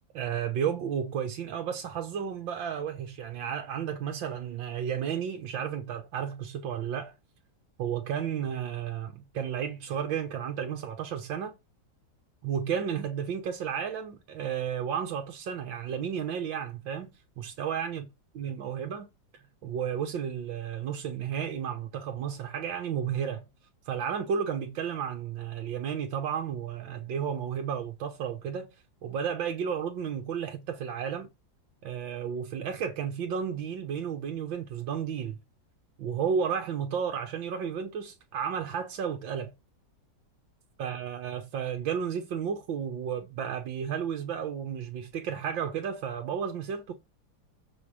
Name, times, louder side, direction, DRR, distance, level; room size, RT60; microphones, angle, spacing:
voice 1, 0.1-7.1 7.8-11.6 12.4-18.1 18.4-19.1 19.6-23.5 23.9-28.7 29.0-31.3 31.8-35.4 36.0-39.5 40.8-46.9, right 8 dB, 80° right, 1.8 m, -32 dB
7.5 x 5.5 x 4.8 m
omnidirectional pair, 2.1 m